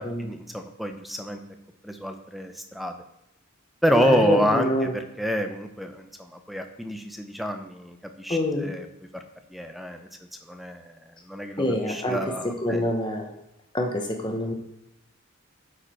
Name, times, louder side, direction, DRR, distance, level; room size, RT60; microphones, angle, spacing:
voice 1, 0.0-1.4 1.8-3.0 3.8-8.9 9.5-10.1 10.5-10.9 11.3-12.8, equal, ahead, 6 dB, 0.6 m, -28 dB
voice 2, 3.9-4.9 8.3-8.7 11.6-12.2 12.6-13.3 13.7-14.5, left 1 dB, 20° left, 2 dB, 1.0 m, -26 dB
9.1 x 4.9 x 4.3 m, 0.83 s
head